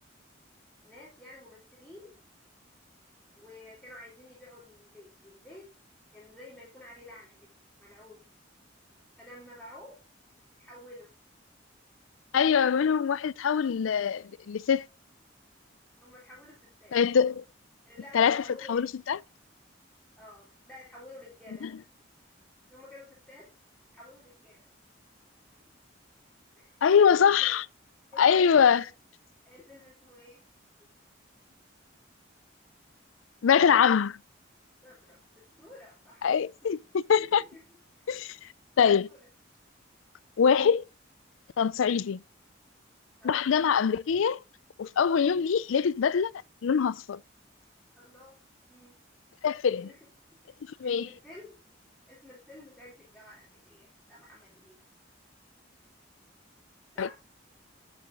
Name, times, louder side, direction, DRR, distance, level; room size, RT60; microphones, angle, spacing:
voice 1, 0.8-2.1 3.4-5.7 6.1-8.3 9.2-10.0 10.6-11.1 16.0-17.0 17.9-18.9 20.2-21.7 22.7-23.5 23.9-24.7 26.5-27.6 28.1-28.9 29.4-30.4 34.8-36.3 37.2-37.6 37.9-38.1 38.8-39.3 43.2-43.5 48.0-48.4 48.7-48.9 49.8-50.0 50.4-50.5 50.8-51.6 52.1-54.8 56.9-57.2, left 1 dB, 5° left, 2.9 m, -51 dB
voice 2, 12.3-14.9 16.9-17.4 18.1-18.4 18.7-19.2 21.6-21.7 26.8-27.6 28.2-28.8 33.4-34.2 36.2-37.4 38.1-38.4 38.8-39.1 40.4-40.8 41.6-42.2 43.2-44.4 44.8-46.3 46.6-47.2 49.4-49.9 50.8-51.0 57.0-57.1, left 7 dB, 80° left, 0.4 m, -23 dB
9.0 x 7.2 x 2.6 m
head